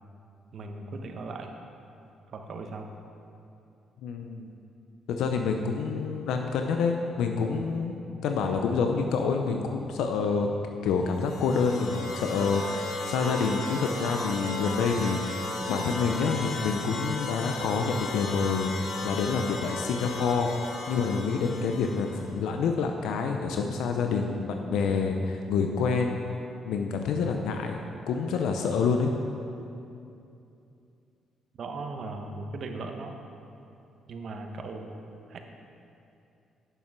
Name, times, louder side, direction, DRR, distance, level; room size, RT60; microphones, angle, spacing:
voice 1, 0.5-1.5 2.3-2.9 31.6-33.1 34.1-34.9 35.3-35.4, right 3 dB, 60° right, 4 dB, 1.0 m, -38 dB
voice 2, 4.0-4.5 5.1-10.5 10.8-26.2 26.6-27.8 28.1-29.1, left 5 dB, 85° left, 4 dB, 0.6 m, -27 dB
sound 1, 11.1-22.3, left 2 dB, 65° left, 1.1 m, -35 dB
8.9 x 6.6 x 6.0 m, 2.7 s
cardioid pair, 90°, 0 cm